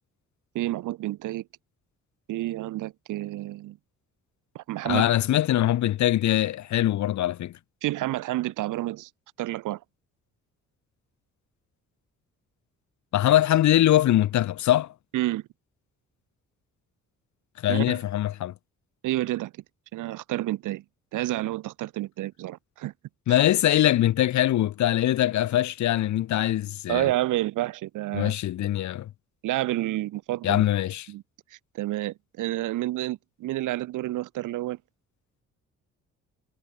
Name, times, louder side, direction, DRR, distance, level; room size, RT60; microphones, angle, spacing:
voice 1, 0.6-1.4 2.3-3.8 4.6-5.1 7.8-9.1 9.4-9.8 15.1-15.4 17.7-18.0 19.0-19.5 19.9-20.8 21.1-22.9 23.3-23.4 26.9-28.3 29.4-30.6 31.1-31.2 31.7-34.8, right 16 dB, 85° right, 1.8 m, -29 dB
voice 2, 4.8-7.5 13.1-14.9 17.6-18.5 23.3-27.1 28.1-29.1 30.4-31.1, left 13 dB, 70° left, 1.2 m, -22 dB
cardioid pair, 90°, 30 cm